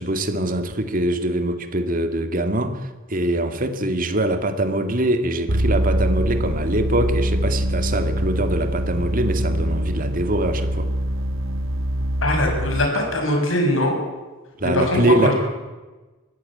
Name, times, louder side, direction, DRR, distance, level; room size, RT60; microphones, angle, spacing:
voice 1, 0.0-2.8 3.1-10.9 14.6-15.3, right 1 dB, 45° right, 7 dB, 2.2 m, -23 dB
sound 1, 5.5-12.9, equal, 70° right, 1.4 m, -23 dB
voice 2, 12.2-14.0 14.6-15.3, left 1 dB, 70° left, 2 dB, 6.5 m, -21 dB
22.0 x 15.5 x 8.7 m, 1.2 s
head